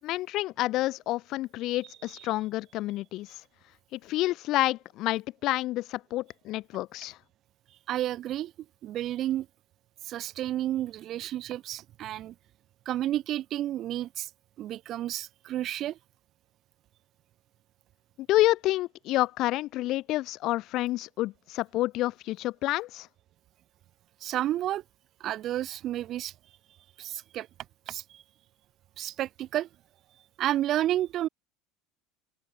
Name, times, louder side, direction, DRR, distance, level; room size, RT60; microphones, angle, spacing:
voice 1, 0.0-3.3 3.9-7.2 18.3-23.1, left 17 dB, 55° left, 7.0 m, -29 dB
voice 2, 7.9-8.5 8.8-9.5 10.1-12.3 12.9-14.3 14.6-16.0 24.2-24.8 25.2-26.3 27.0-27.5 27.9-28.2 29.0-29.7 30.4-31.3, right 13 dB, 45° right, 2.4 m, -31 dB
open air
supercardioid pair, 120°, 0 cm